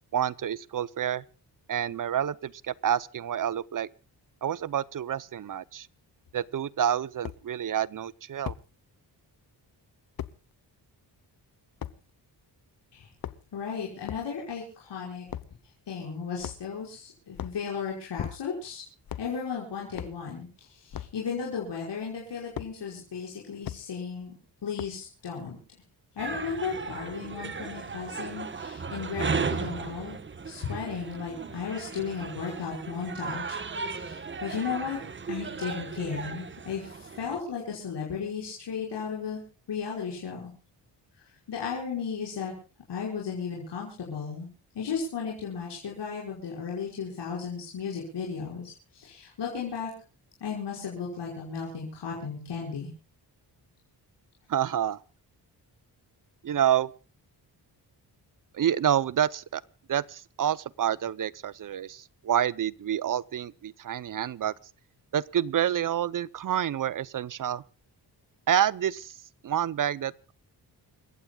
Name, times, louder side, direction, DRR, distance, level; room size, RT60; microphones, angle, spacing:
voice 1, 0.1-1.2 1.7-3.9 4.4-5.9 6.3-8.5 54.5-55.0 56.4-56.9 58.5-59.6 59.9-64.5 65.1-67.6 68.5-69.2 69.4-70.3, right 10 dB, 50° right, 0.6 m, -28 dB
sound 1, 6.2-6.3 7.2-7.4 8.5-8.7 10.2-10.4 11.8-12.0 13.1-13.6 14.0-14.3 15.3-15.5 16.4-16.8 17.3-17.6 18.2-18.6 19.1-19.3 19.9-20.2 20.9-21.2 22.6-22.7 23.6-23.8 24.8-25.1, left 10 dB, 55° left, 0.9 m, -37 dB
voice 2, 13.5-15.3 15.9-18.8 19.2-24.3 24.6-25.6 26.2-30.2 30.4-35.0 35.3-39.4 39.7-40.5 41.2-42.5 42.9-44.5 44.7-49.9 50.4-52.9, left 6 dB, 75° left, 5.4 m, -35 dB
sound 2, 26.2-37.4, right 5 dB, 30° right, 1.1 m, -36 dB
29.0 x 15.5 x 2.3 m
wide cardioid pair, 155°, 42 cm